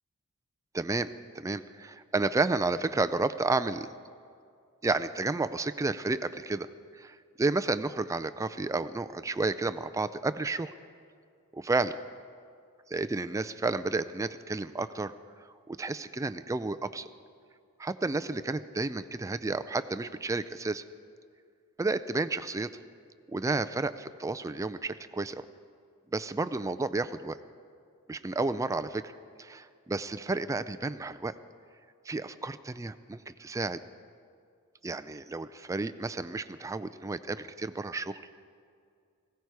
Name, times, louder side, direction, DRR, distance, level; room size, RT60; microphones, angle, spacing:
voice 1, 0.7-3.9 4.8-6.7 6.9-10.7 11.5-11.9 12.9-15.1 15.7-17.1 17.8-20.8 21.8-22.7 23.3-25.5 26.1-27.4 28.1-29.1 29.4-31.3 32.1-33.8 34.8-38.2, right 3 dB, 15° right, 12 dB, 0.3 m, -31 dB
18.5 x 16.5 x 4.7 m, 2.3 s
head